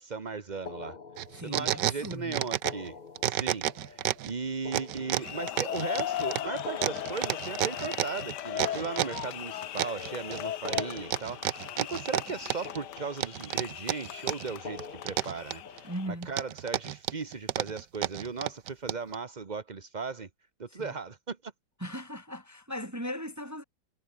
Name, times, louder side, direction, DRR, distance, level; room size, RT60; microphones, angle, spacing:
voice 1, 0.0-3.0 3.2-20.3 20.6-21.5, right 4 dB, 30° right, 1.1 m, -37 dB
sound 1, 0.7-1.9 2.5-5.8 6.5-9.8 10.5-12.4 12.6-13.7 14.5-16.3, left 5 dB, 30° left, 1.2 m, -47 dB
sound 2, 1.2-2.9 3.2-4.3 4.7-9.3 9.8-10.4 10.7-12.8 13.2-14.5 14.8-15.8 16.2-19.2, right 13 dB, 75° right, 1.3 m, -30 dB
voice 2, 1.4-2.4 15.8-16.3 20.7-20.9 21.8-23.6, equal, 10° right, 1.6 m, -38 dB
sound 3, 5.0-16.1, left 12 dB, 70° left, 1.4 m, -38 dB
omnidirectional pair, 2.0 m